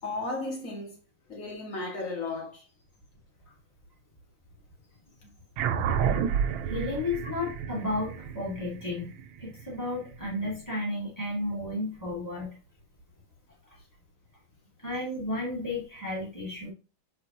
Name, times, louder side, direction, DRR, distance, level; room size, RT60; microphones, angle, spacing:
voice 1, 0.0-1.0 1.3-2.7 5.2-5.3, left 2 dB, 40° left, 2.3 m, -34 dB
sound 1, 5.6-10.3, right 8 dB, 80° right, 1.5 m, -30 dB
voice 2, 6.7-9.1 9.4-12.6 14.8-16.7, left 2 dB, 10° left, 1.7 m, -33 dB
6.5 x 5.2 x 2.8 m
omnidirectional pair, 2.2 m